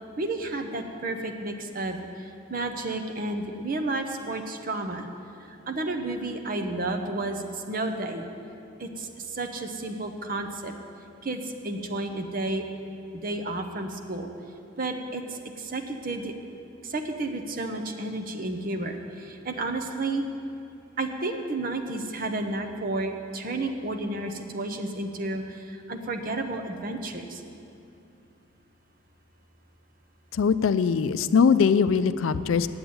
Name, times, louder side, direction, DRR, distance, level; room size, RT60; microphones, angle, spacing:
voice 1, 0.2-5.1 5.5-8.3 8.8-10.7 11.2-12.6 13.1-14.3 14.8-16.3 16.8-20.2 21.0-27.4, right 2 dB, 45° right, 4 dB, 0.8 m, -31 dB
voice 2, 30.3-32.7, left 6 dB, 80° left, 13 dB, 0.4 m, -21 dB
8.6 x 7.9 x 8.7 m, 2.6 s
head